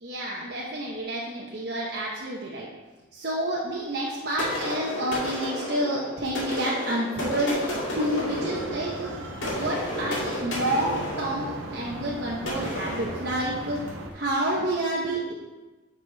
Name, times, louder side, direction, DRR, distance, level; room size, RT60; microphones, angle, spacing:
voice 1, 0.0-2.7 3.1-7.6 7.9-9.1 9.6-13.8 14.1-15.3, right 1 dB, 55° right, -4 dB, 0.9 m, -29 dB
sound 1, 4.4-14.0, left 1 dB, 75° left, 2.4 m, -33 dB
sound 2, 8.1-14.1, right 2 dB, 75° right, 0.8 m, -38 dB
9.6 x 4.9 x 3.5 m, 1.2 s
head